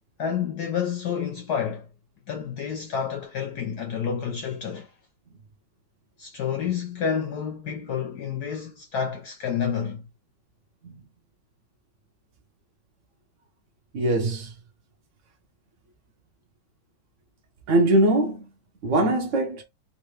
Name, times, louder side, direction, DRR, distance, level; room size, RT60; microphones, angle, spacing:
voice 1, 0.2-1.9 2.3-4.9 6.2-10.0, left 7 dB, 70° left, 1.0 m, -29 dB
voice 2, 13.9-14.5 17.7-18.5 18.8-19.6, right 1 dB, 75° right, 0.7 m, -21 dB
3.5 x 2.5 x 3.2 m
omnidirectional pair, 2.3 m